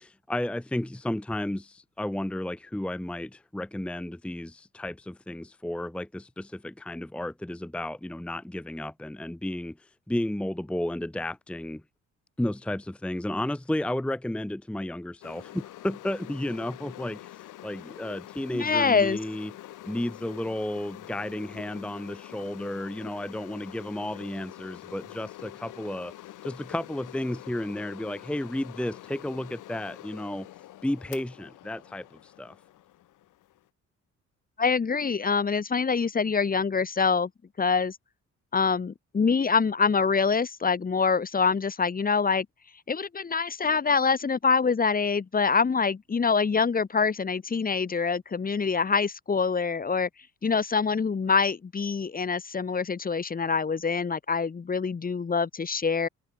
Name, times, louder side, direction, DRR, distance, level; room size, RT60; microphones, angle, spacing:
voice 1, 0.0-11.8 12.4-19.5 19.8-26.1 26.4-30.5 30.8-32.5, left 1 dB, 5° left, 0.8 m, -33 dB
sound 1, 15.2-33.7, left 15 dB, 85° left, 5.7 m, -46 dB
voice 2, 18.5-19.2 34.6-37.3 37.6-38.0 38.5-42.5 42.9-50.1 50.4-56.1, left 5 dB, 30° left, 1.3 m, -25 dB
cardioid pair, 90°, 30 cm